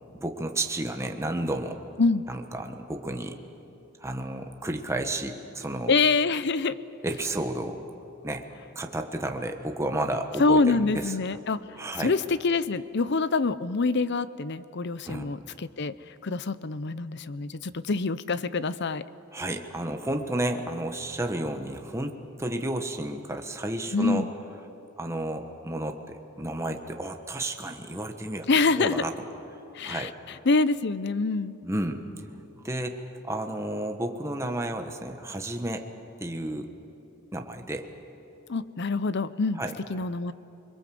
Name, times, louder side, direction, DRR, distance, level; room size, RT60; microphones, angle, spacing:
voice 1, 0.1-1.8 2.3-3.4 4.0-5.9 7.0-7.8 8.2-8.4 8.7-11.1 11.8-12.1 15.0-15.3 19.3-24.3 25.0-28.5 28.8-29.1 29.8-30.1 31.6-32.0 32.6-35.8 36.2-36.7 37.3-37.9 39.6-39.8, right 1 dB, 15° right, 4 dB, 1.3 m, -32 dB
voice 2, 5.9-6.8 10.4-11.6 12.0-15.9 16.2-19.0 23.9-24.3 28.5-29.0 29.7-30.1 30.5-31.5 38.5-39.6 39.9-40.3, left 3 dB, 55° left, 15 dB, 0.7 m, -25 dB
28.5 x 22.0 x 7.8 m, 2.9 s
head